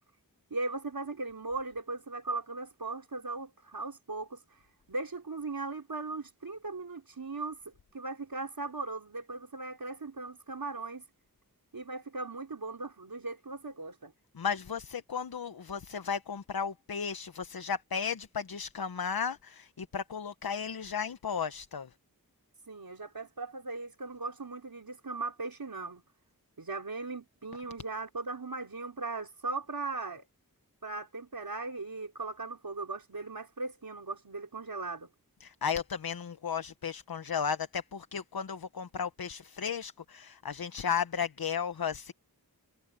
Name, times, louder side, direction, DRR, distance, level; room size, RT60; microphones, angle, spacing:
voice 1, 0.5-4.4 4.9-11.0 11.7-14.1 22.7-26.0 26.6-30.3 30.8-35.1, right 3 dB, 70° right, 4.0 m, -38 dB
voice 2, 14.3-21.9 35.4-42.1, left 7 dB, 75° left, 0.9 m, -34 dB
wide cardioid pair, 50°, 37 cm